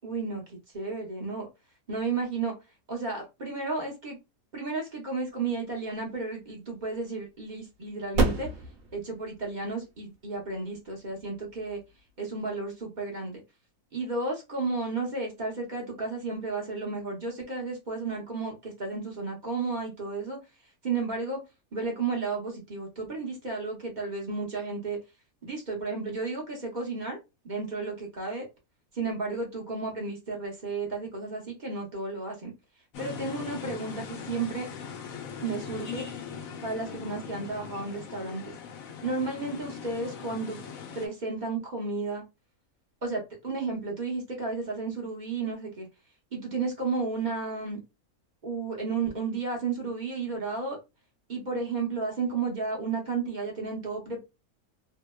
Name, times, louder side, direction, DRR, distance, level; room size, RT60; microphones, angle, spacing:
voice 1, 0.0-1.5 1.9-2.5 2.9-4.2 4.5-8.5 8.9-11.8 12.2-13.4 13.9-20.4 20.8-21.4 21.7-25.0 25.4-27.2 27.4-28.4 28.9-32.5 33.0-34.7 35.4-36.0 36.6-38.6 39.0-40.6 40.9-42.2 43.0-45.9 46.3-47.8 48.4-50.8 51.3-54.2, right 4 dB, 40° right, 0 dB, 0.8 m, -33 dB
sound 1, 5.7-12.8, right 3 dB, 75° right, 1.0 m, -34 dB
sound 2, 32.9-41.1, left 6 dB, 75° left, 1.0 m, -40 dB
2.7 x 2.1 x 2.2 m, 0.25 s
omnidirectional pair, 1.5 m